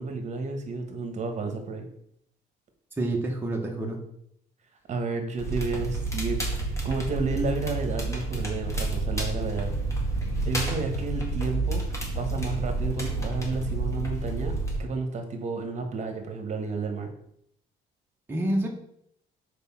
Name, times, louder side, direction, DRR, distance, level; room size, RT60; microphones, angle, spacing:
voice 1, 0.0-1.9 4.9-9.7 10.4-11.8 12.2-17.1, right 3 dB, 45° right, 5 dB, 1.4 m, -31 dB
voice 2, 3.0-4.0 18.3-18.7, right 1 dB, 15° right, -1 dB, 1.1 m, -27 dB
Crackle, 5.4-14.8, right 2 dB, 15° left, 2.1 m, -30 dB
5.4 x 4.7 x 5.6 m, 0.70 s
cardioid pair, 110°, 17 cm